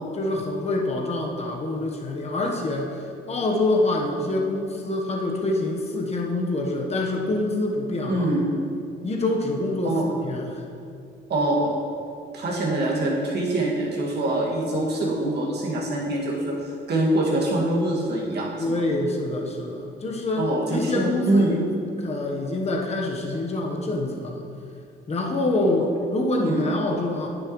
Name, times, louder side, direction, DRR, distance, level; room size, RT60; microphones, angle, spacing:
voice 1, 0.1-8.3 9.0-10.6 18.6-21.7 22.0-24.4 25.1-27.3, left 2 dB, 30° left, 0 dB, 1.1 m, -26 dB
voice 2, 8.1-8.5 9.8-10.0 11.3-11.7 12.3-16.5 16.9-18.8 20.3-21.5 26.4-26.7, right 1 dB, 55° right, -4 dB, 2.0 m, -24 dB
9.7 x 6.8 x 3.1 m, 2.5 s
cardioid pair, 90°, 20 cm